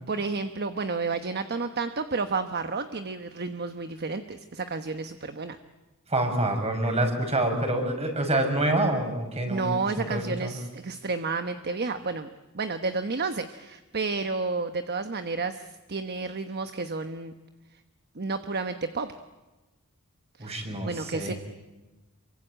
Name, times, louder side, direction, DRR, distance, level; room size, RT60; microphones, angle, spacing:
voice 1, 0.1-5.6 9.5-12.3 12.5-17.3 18.1-19.1 20.4-21.3, right 4 dB, 45° right, 8 dB, 1.1 m, -31 dB
voice 2, 6.1-10.6 20.4-21.4, right 1 dB, 30° right, 4 dB, 5.8 m, -27 dB
27.0 x 24.0 x 9.0 m, 1.1 s
head